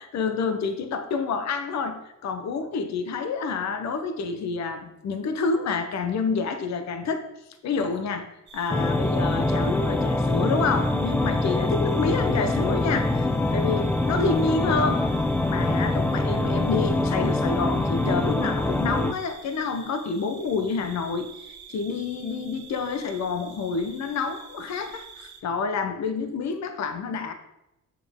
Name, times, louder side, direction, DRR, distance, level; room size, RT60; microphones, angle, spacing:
voice 1, 0.0-7.3 7.6-8.3 8.5-15.1 15.4-27.3, left 4 dB, 65° left, 8 dB, 0.9 m, -28 dB
sound 1, 8.5-25.4, right 4 dB, 35° right, 1.6 m, -46 dB
sound 2, 8.7-19.1, left 2 dB, 5° left, 0.3 m, -24 dB
7.1 x 5.8 x 3.6 m, 0.90 s
cardioid pair, 90°, 30 cm